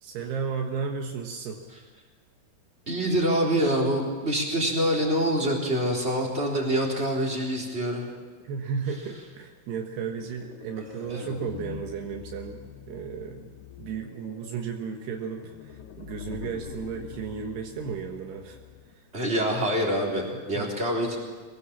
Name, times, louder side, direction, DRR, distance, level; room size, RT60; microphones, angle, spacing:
voice 1, 0.0-1.6 8.4-12.6 12.9-13.5 13.8-18.6 20.5-20.7, right 6 dB, 80° right, 2 dB, 3.4 m, -34 dB
voice 2, 2.9-8.1 11.1-11.2 19.1-21.2, equal, 15° right, -2 dB, 3.5 m, -25 dB
sound 1, 10.2-18.9, left 8 dB, 80° left, 3.2 m, -44 dB
23.0 x 18.5 x 7.3 m, 1.5 s
omnidirectional pair, 4.7 m